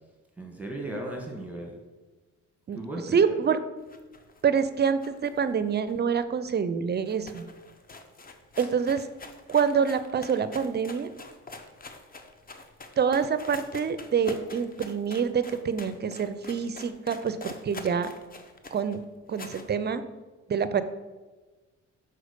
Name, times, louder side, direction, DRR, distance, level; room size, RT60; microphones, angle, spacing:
voice 1, 0.4-1.8 2.7-3.3 8.6-8.7, right 1 dB, 5° right, 0 dB, 1.5 m, -36 dB
voice 2, 3.1-3.6 4.4-7.5 8.6-9.1 9.5-11.1 13.0-18.1 18.7-19.0 19.3-20.0 20.5-20.8, right 6 dB, 35° right, 12 dB, 0.5 m, -26 dB
sound 1, 3.8-6.4 6.7-6.8 7.0-19.7, left 3 dB, 30° left, 0.7 m, -45 dB
6.3 x 4.4 x 5.1 m, 1.3 s
cardioid pair, 90°, 30 cm